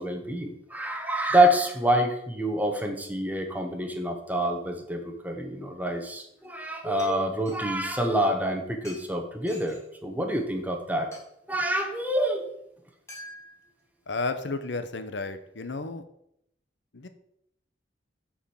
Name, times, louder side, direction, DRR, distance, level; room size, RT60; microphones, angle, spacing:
voice 1, 0.0-11.1 11.5-12.5, right 1 dB, 10° right, 3 dB, 1.0 m, -27 dB
sound 1, 6.2-6.5 7.0-7.6 8.8-9.1 9.5-9.9 10.4-10.5 11.1-11.3 13.1-13.7 14.3-14.4, left 1 dB, 15° left, 1.9 m, -46 dB
voice 2, 14.1-16.0 16.9-17.1, left 3 dB, 80° left, 10 dB, 0.9 m, -32 dB
7.3 x 4.7 x 7.0 m, 0.76 s
head